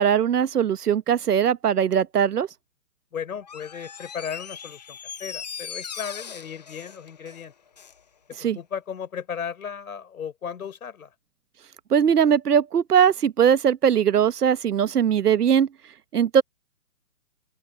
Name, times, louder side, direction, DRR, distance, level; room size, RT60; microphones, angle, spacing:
voice 1, 0.0-2.5 8.4-8.6 11.9-15.7 16.1-16.4, right 8 dB, 75° right, 1.1 m, -20 dB
voice 2, 3.1-7.5 8.3-11.1, left 7 dB, 60° left, 5.4 m, -35 dB
Door, 3.4-8.0 8.3-8.4, left 7 dB, 25° left, 0.7 m, -39 dB
open air
hypercardioid pair, 165°, 47 cm